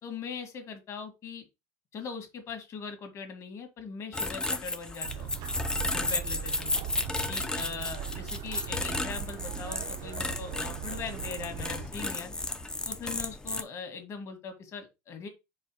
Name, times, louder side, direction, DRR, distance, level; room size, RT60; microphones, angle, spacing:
voice 1, 0.0-1.5 1.9-5.3 5.9-6.8 7.3-12.3 12.8-15.3, left 5 dB, 35° left, 1.7 m, -40 dB
sound 1, 4.1-13.6, left 2 dB, 10° left, 0.6 m, -33 dB
sound 2, 5.0-11.9, right 11 dB, 55° right, 0.7 m, -39 dB
4.9 x 4.5 x 4.4 m
cardioid pair, 150°, 9 cm